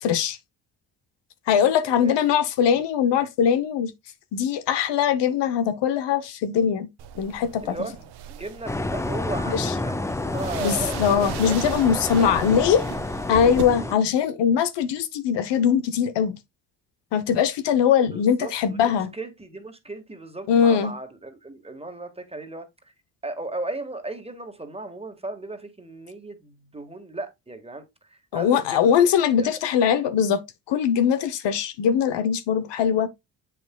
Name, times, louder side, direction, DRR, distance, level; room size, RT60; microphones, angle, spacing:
voice 1, 0.0-0.4 1.5-3.9 4.3-6.9 7.2-7.7 9.5-9.7 10.6-12.8 13.3-16.3 17.1-19.1 20.5-20.9 28.3-30.4 30.7-33.1, left 8 dB, 75° left, 0.9 m, -21 dB
voice 2, 1.8-2.2 7.6-11.6 11.9-12.6 13.8-14.0 18.1-22.9 23.2-29.0 29.4-29.5, right 2 dB, 15° right, 1.7 m, -36 dB
sound 1, 7.0-13.6, right 10 dB, 65° right, 0.9 m, -38 dB
sound 2, 8.7-13.9, left 2 dB, 5° left, 0.4 m, -29 dB
7.6 x 5.7 x 2.2 m
cardioid pair, 75°, 42 cm